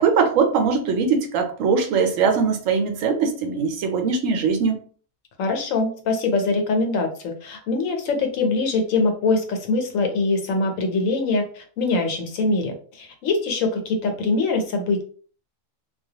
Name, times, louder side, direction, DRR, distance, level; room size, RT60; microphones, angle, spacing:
voice 1, 0.0-4.8, right 5 dB, 80° right, 4 dB, 1.0 m, -21 dB
voice 2, 5.4-15.0, left 3 dB, 80° left, 4 dB, 1.0 m, -23 dB
2.3 x 2.1 x 2.7 m, 0.44 s
omnidirectional pair, 1.4 m